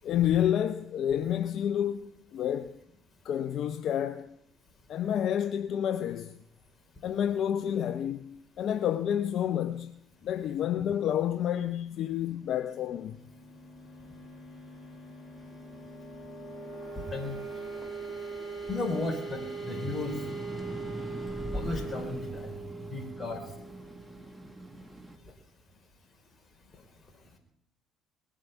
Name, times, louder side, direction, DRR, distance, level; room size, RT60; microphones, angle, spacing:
voice 1, 0.0-2.8 3.2-4.4 4.9-6.4 7.0-10.0 10.2-13.2, left 10 dB, 65° left, 0.6 m, -29 dB
sound 1, 12.4-24.9, right 3 dB, 5° left, 7.3 m, -42 dB
sound 2, 15.5-18.1 18.5-25.2, right 1 dB, 15° right, 1.8 m, -42 dB
voice 2, 17.0-17.4 18.7-20.2 21.5-23.7, left 3 dB, 30° left, 4.3 m, -35 dB
20.5 x 7.6 x 8.1 m
supercardioid pair, 70°, 0 cm